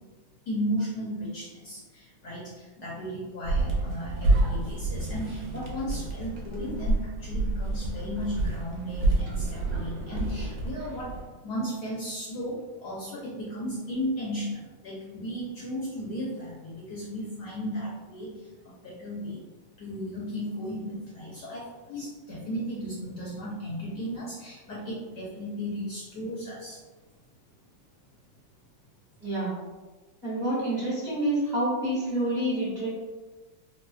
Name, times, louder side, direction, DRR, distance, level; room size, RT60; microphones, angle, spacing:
voice 1, 0.4-11.1 11.4-19.4 19.8-26.8, equal, 65° left, -6 dB, 1.1 m, -35 dB
sound 1, 3.4-11.2, right 2 dB, 70° right, 1.2 m, -28 dB
voice 2, 29.2-29.5 30.2-32.9, right 1 dB, 25° right, -10 dB, 1.2 m, -28 dB
4.0 x 2.3 x 2.3 m, 1.2 s
omnidirectional pair, 2.2 m